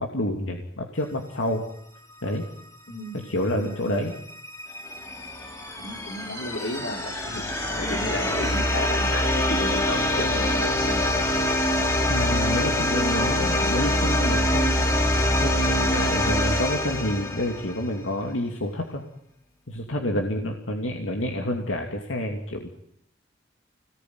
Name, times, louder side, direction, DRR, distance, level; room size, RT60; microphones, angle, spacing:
voice 1, 0.0-1.7 2.2-2.4 3.1-4.1 12.1-15.1 15.3-19.0 19.7-22.7, left 1 dB, 85° left, 2 dB, 2.8 m, -28 dB
voice 2, 2.9-4.0 5.8-7.4 7.8-11.1 12.2-12.8 20.4-20.5, left 1 dB, 65° left, 3 dB, 4.7 m, -34 dB
sound 1, 4.1-17.9, left 1 dB, 15° left, 3.6 m, -24 dB
26.0 x 19.5 x 9.6 m, 0.77 s
head